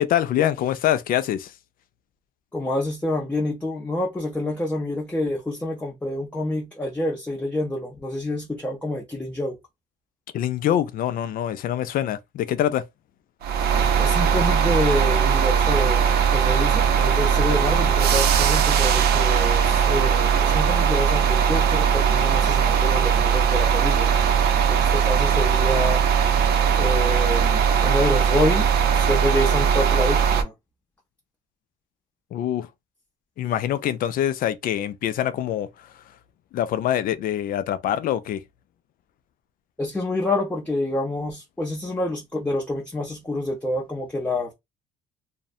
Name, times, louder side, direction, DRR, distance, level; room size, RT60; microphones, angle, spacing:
voice 1, 0.0-1.5 10.3-12.8 32.3-32.7 33.4-35.7 36.5-38.4, left 11 dB, 55° left, 0.4 m, -24 dB
voice 2, 2.5-9.6 13.6-24.1 24.7-26.0 26.8-28.7 28.9-30.5 39.8-44.5, left 1 dB, 10° left, 0.6 m, -27 dB
sound 1, 13.4-30.4, right 7 dB, 70° right, 0.5 m, -19 dB
2.6 x 2.1 x 2.3 m
cardioid pair, 110°, 17 cm